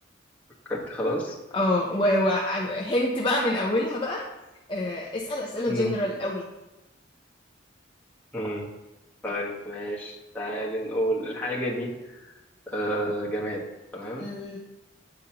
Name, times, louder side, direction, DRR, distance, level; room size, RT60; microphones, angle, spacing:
voice 1, 0.7-1.3 5.7-5.9 8.3-8.7 9.2-12.3 12.7-13.6 13.9-14.3, equal, 10° left, -5 dB, 1.2 m, -30 dB
voice 2, 1.5-4.2 4.7-6.5 14.2-14.6, left 1 dB, 25° left, -3 dB, 0.6 m, -26 dB
8.9 x 5.3 x 2.9 m, 1.0 s
head